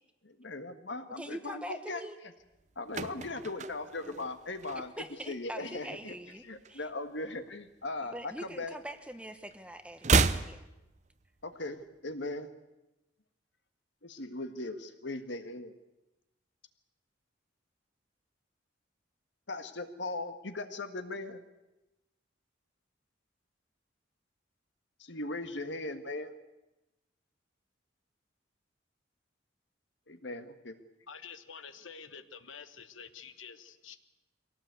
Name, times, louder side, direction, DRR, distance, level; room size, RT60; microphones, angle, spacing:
voice 1, 0.2-2.0 2.8-4.9 5.3-6.2 6.4-8.7 11.4-12.5 14.0-15.7 19.5-21.4 25.0-26.3 30.1-30.8, left 2 dB, 65° left, 8 dB, 1.7 m, -39 dB
voice 2, 1.2-2.2 5.0-6.4 6.7-6.9 8.1-10.7, right 1 dB, 5° right, 9 dB, 1.0 m, -43 dB
sound 1, 2.5-5.2 5.5-5.8 6.1-7.5 7.8-9.2 9.4-11.5 11.8-11.9, right 4 dB, 35° right, 0.7 m, -32 dB
voice 3, 31.1-34.0, left 6 dB, 85° left, 10 dB, 1.3 m, -48 dB
23.0 x 17.5 x 8.3 m, 0.98 s
head